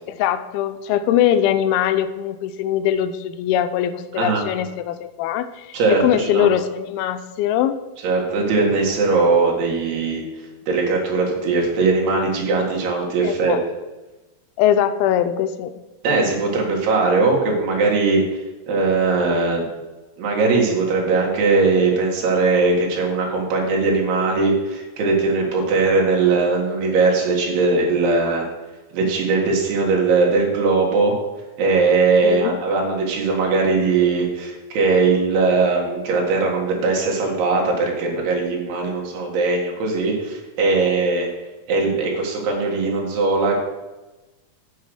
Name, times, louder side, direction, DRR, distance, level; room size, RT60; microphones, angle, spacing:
voice 1, 0.1-7.8 13.2-13.6 14.6-15.7 32.2-32.6, left 10 dB, 80° left, 10 dB, 2.4 m, -21 dB
voice 2, 5.7-6.5 8.0-10.2 10.7-13.6 16.0-18.4 18.7-19.7 20.2-28.5 28.9-31.2 31.6-41.3 41.7-43.6, right 3 dB, 80° right, -1 dB, 3.7 m, -20 dB
8.2 x 6.6 x 6.3 m, 1.1 s
omnidirectional pair, 4.6 m